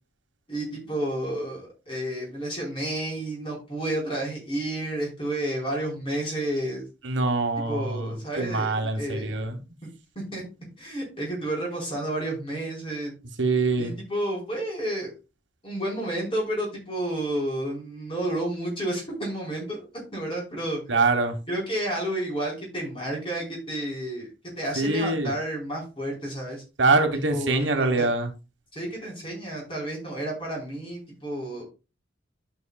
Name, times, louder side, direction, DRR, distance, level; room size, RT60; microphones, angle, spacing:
voice 1, 0.5-6.8 7.7-9.3 10.3-10.4 10.8-13.1 13.8-15.1 15.6-19.9 20.1-20.8 21.5-24.3 24.6-26.6 27.3-28.1 28.7-31.6, right 1 dB, 30° left, 4.4 m, -31 dB
voice 2, 7.0-9.6 13.4-13.9 20.9-21.3 24.8-25.3 26.8-28.3, right 3 dB, 70° right, 1.4 m, -24 dB
11.5 x 6.3 x 2.3 m
head